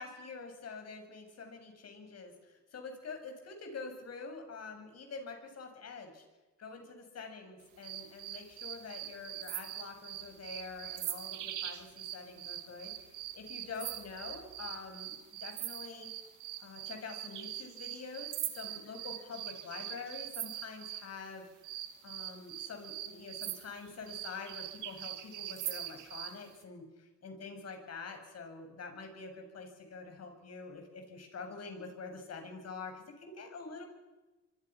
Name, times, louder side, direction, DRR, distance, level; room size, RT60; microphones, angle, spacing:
voice 1, 0.0-6.2 6.6-12.9 13.3-16.1 16.6-18.3 18.5-21.4 22.0-33.8, left 4 dB, 55° left, 5 dB, 7.1 m, -46 dB
sound 1, 7.8-21.1 21.6-26.4, right 12 dB, 90° right, 1.9 m, -42 dB
26.0 x 24.5 x 6.2 m, 1.1 s
cardioid pair, 90°, 30 cm